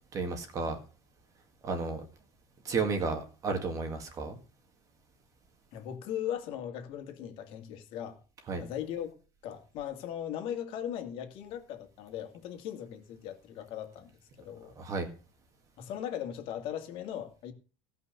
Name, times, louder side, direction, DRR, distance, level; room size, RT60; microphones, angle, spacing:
voice 1, 0.1-0.8 1.6-2.0 2.6-4.4 8.5-8.6 14.8-15.1, right 4 dB, 25° right, 2.0 m, -32 dB
voice 2, 5.7-8.2 8.6-9.1 9.4-14.7 15.8-17.5, left 10 dB, 45° left, 2.3 m, -38 dB
16.0 x 5.8 x 6.8 m
cardioid pair, 165°, 12 cm